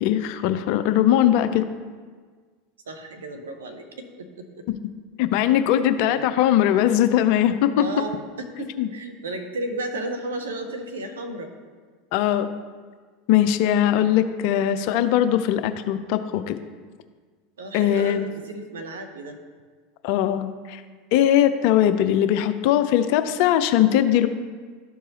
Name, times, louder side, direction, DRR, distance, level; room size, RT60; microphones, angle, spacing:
voice 1, 0.0-1.7 4.7-4.8 5.2-7.8 8.8-8.9 12.1-12.5 13.3-16.6 17.7-18.3 20.0-20.8 21.1-24.3, left 11 dB, 60° left, 11 dB, 0.5 m, -20 dB
voice 2, 2.9-4.6 6.1-6.3 7.8-11.5 13.9-14.1 17.6-19.4, right 2 dB, 80° right, 6 dB, 0.8 m, -34 dB
12.5 x 4.6 x 2.9 m, 1.5 s
hypercardioid pair, 85°, 0 cm